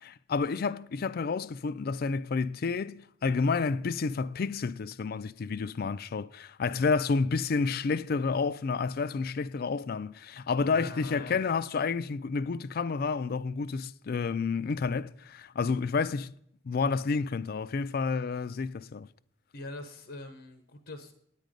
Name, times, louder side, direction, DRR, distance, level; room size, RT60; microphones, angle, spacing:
voice 1, 0.0-16.3 16.6-19.1, left 4 dB, 55° left, 0.4 m, -30 dB
voice 2, 10.7-11.5 19.5-21.1, left 2 dB, 80° left, 0.9 m, -43 dB
9.1 x 9.1 x 5.1 m
head